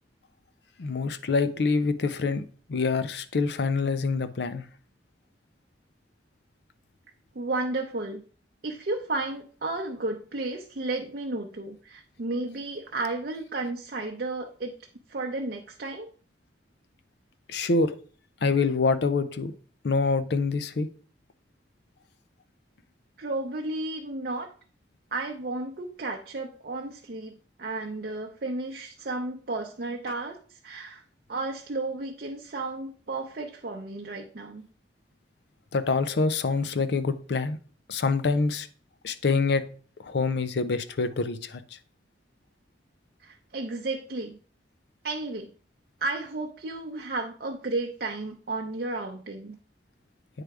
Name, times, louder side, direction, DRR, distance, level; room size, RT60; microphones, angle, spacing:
voice 1, 0.8-4.7 17.5-18.0 18.4-19.5 19.8-20.9 35.7-37.6 37.9-38.7 39.0-39.7 40.0-41.8, left 4 dB, 60° left, 12 dB, 0.5 m, -26 dB
voice 2, 7.3-8.2 8.6-14.8 15.1-16.1 23.2-24.5 25.1-31.0 31.3-34.7 43.2-44.4 45.0-45.5 46.0-49.6, right 2 dB, 55° right, 2 dB, 0.6 m, -33 dB
9.0 x 3.4 x 4.7 m, 0.42 s
head